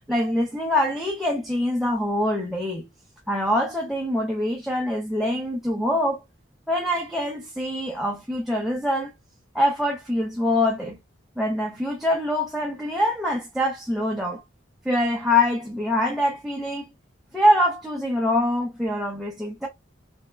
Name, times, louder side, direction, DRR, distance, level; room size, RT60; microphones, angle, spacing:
voice 1, 0.1-2.8 3.3-6.2 6.7-9.1 9.5-11.0 11.4-14.4 14.8-16.9 17.3-19.7, left 1 dB, ahead, 0.6 m, -24 dB
3.5 x 3.1 x 2.2 m
head